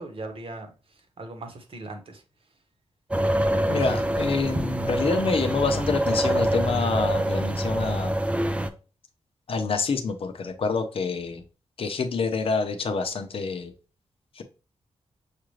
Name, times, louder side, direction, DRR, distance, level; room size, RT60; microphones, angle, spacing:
voice 1, 0.0-2.2, right 2 dB, 55° right, 1.0 m, -39 dB
sound 1, 3.1-8.7, right 1 dB, 10° right, 0.4 m, -25 dB
voice 2, 3.7-8.1 9.5-11.4 11.8-13.7 14.4-14.5, left 4 dB, 55° left, 0.7 m, -27 dB
6.5 x 2.5 x 3.1 m
wide cardioid pair, 175°, 11 cm